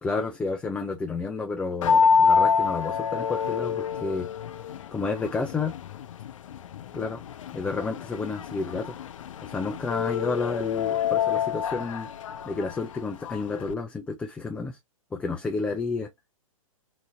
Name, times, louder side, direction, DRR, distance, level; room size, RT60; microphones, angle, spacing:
voice 1, 0.0-4.3 4.9-5.7 6.9-7.2 7.5-9.0 9.4-12.1 12.4-14.8 15.1-16.1, left 4 dB, 5° left, 0.4 m, -30 dB
sound 1, 1.8-13.7, left 6 dB, 65° left, 0.5 m, -27 dB
3.9 x 2.7 x 3.0 m
hypercardioid pair, 130°, 18 cm